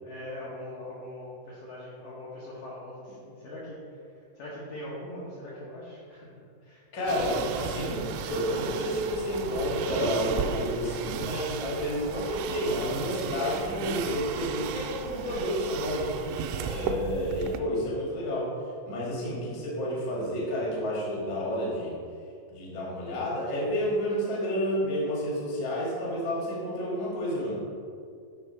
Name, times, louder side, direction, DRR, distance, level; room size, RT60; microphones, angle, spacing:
voice 1, 0.0-3.8 4.4-6.3 6.6-6.8, left 1 dB, 85° left, -7 dB, 1.8 m, -41 dB
voice 2, 6.9-16.3 16.6-18.5 18.9-22.0 22.5-27.6, equal, 60° left, -5 dB, 1.1 m, -30 dB
sound 1, 7.1-17.6, right 7 dB, 85° right, 2.9 m, -34 dB
9.0 x 3.7 x 5.8 m, 2.3 s
omnidirectional pair, 5.7 m